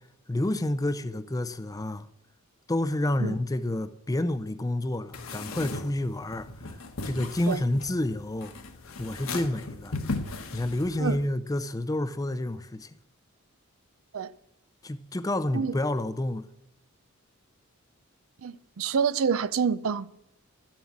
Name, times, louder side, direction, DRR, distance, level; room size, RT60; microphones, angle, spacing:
voice 1, 0.3-2.1 2.7-6.8 7.0-8.6 9.0-10.0 10.5-12.9 14.8-16.4, left 1 dB, 15° left, 0.5 m, -29 dB
sound 1, 5.1-11.3, left 3 dB, 70° left, 1.3 m, -37 dB
voice 2, 18.4-20.1, right 6 dB, 65° right, 0.5 m, -27 dB
12.5 x 7.3 x 7.2 m
head